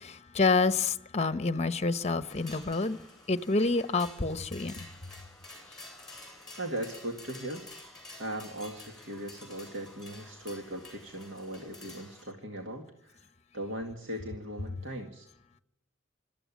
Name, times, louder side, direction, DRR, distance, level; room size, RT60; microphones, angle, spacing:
voice 1, 0.0-3.0 3.3-4.7, left 3 dB, 35° left, 0.9 m, -28 dB
sound 1, 2.3-12.2, left 2 dB, 5° left, 8.0 m, -50 dB
voice 2, 6.6-7.6 8.2-13.3 13.5-15.3, right 1 dB, 80° right, 2.1 m, -39 dB
26.0 x 13.5 x 7.3 m
head